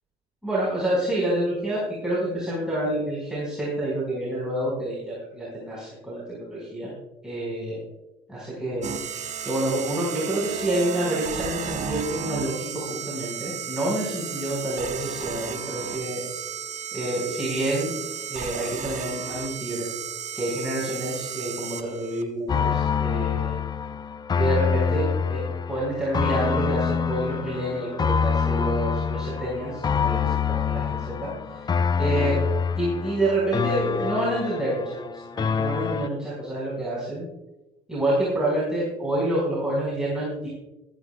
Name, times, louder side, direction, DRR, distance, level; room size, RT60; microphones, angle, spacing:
voice 1, 0.4-6.9 7.2-7.8 8.3-8.9 9.4-16.2 16.9-17.9 18.3-19.9 20.3-23.5 24.4-25.4 25.7-31.7 32.0-32.4 32.8-37.3 37.9-40.5, right 1 dB, 5° right, -8 dB, 4.7 m, -28 dB
sound 1, 8.8-22.2, right 7 dB, 45° right, 1.0 m, -34 dB
sound 2, 22.5-36.1, left 6 dB, 25° left, 0.4 m, -26 dB
15.5 x 13.5 x 2.3 m, 1.0 s
cardioid pair, 110°, 17 cm